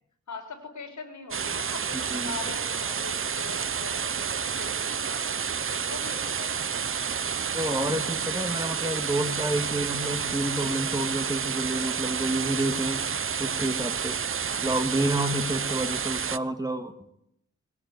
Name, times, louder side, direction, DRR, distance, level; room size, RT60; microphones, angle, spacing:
voice 1, 0.3-5.2 5.7-6.6 15.7-16.0, left 4 dB, 70° left, 4 dB, 5.4 m, -42 dB
sound 1, 1.3-16.4, right 6 dB, 45° right, 0.8 m, -30 dB
voice 2, 1.9-2.4 7.5-13.0 13.4-14.2 14.6-16.9, right 1 dB, 10° right, 8 dB, 1.9 m, -29 dB
20.5 x 18.0 x 9.6 m, 0.77 s
wide cardioid pair, 115°, 30 cm